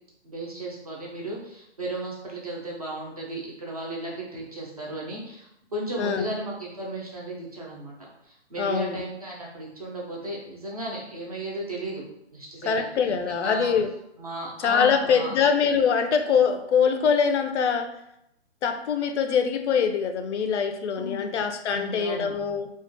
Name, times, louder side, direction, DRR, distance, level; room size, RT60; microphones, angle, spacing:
voice 1, 0.2-7.9 8.2-12.0 12.3-12.9 13.3-13.7 14.2-15.3 21.0-21.3 21.7-22.3, right 1 dB, 35° right, -4 dB, 0.4 m, -35 dB
voice 2, 6.0-6.3 8.6-9.0 12.7-13.9 14.6-17.9 18.6-22.7, left 6 dB, 80° left, 7 dB, 0.5 m, -23 dB
2.4 x 2.2 x 2.5 m, 0.80 s
hypercardioid pair, 175°, 34 cm